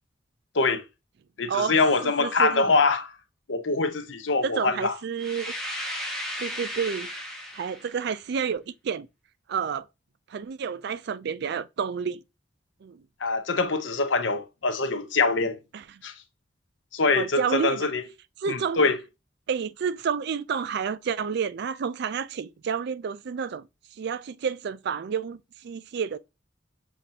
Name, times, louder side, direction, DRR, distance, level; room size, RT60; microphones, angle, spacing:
voice 1, 1.4-3.1 3.5-4.9 13.2-15.6 16.0-16.1 16.9-18.0 18.5-19.0, left 3 dB, 80° left, 0.8 m, -24 dB
voice 2, 2.0-2.6 4.4-5.5 6.4-7.1 7.5-9.1 9.5-9.9 10.3-12.2 12.8-13.0 15.7-16.0 17.2-17.9 18.4-18.8 19.5-23.7 24.0-26.2, right 6 dB, 65° right, 0.4 m, -30 dB
sound 1, 5.2-8.0, equal, 5° left, 1.1 m, -35 dB
7.1 x 2.5 x 2.7 m
head